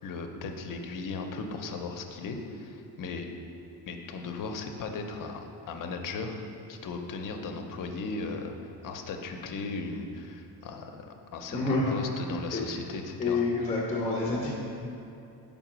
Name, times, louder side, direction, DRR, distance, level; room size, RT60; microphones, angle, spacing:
voice 1, 0.0-3.3 3.9-6.4 6.7-8.5 8.8-11.1 11.3-13.4, left 4 dB, 50° left, 4 dB, 0.6 m, -37 dB
voice 2, 11.5-11.9 12.5-12.6 13.2-14.5, left 3 dB, 15° left, -3 dB, 0.7 m, -28 dB
5.2 x 4.9 x 6.0 m, 2.6 s
cardioid pair, 165°, 41 cm